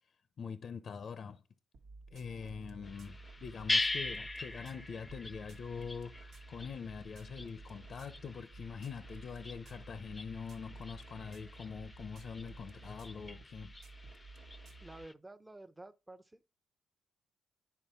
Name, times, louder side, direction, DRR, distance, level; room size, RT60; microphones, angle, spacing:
voice 1, 0.4-1.4 2.1-13.7, left 6 dB, 55° left, 0.8 m, -44 dB
sound 1, 1.7-15.1, right 3 dB, 65° right, 1.2 m, -53 dB
sound 2, 2.8-15.1, left 2 dB, 20° left, 0.7 m, -42 dB
voice 2, 14.8-16.4, right 2 dB, 15° right, 0.9 m, -51 dB
10.5 x 4.4 x 5.7 m
cardioid pair, 90°, 0 cm